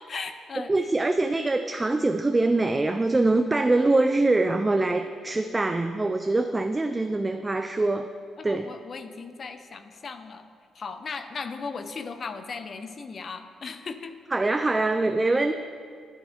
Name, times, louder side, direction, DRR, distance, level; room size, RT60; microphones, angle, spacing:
voice 1, 0.0-0.7 8.4-10.4 10.7-14.2, left 4 dB, 45° left, 9 dB, 0.5 m, -37 dB
voice 2, 0.6-8.1 8.4-8.7 14.3-15.5, right 2 dB, 20° right, 7 dB, 0.3 m, -24 dB
11.5 x 5.5 x 3.5 m, 2.3 s
cardioid pair, 90°, 0 cm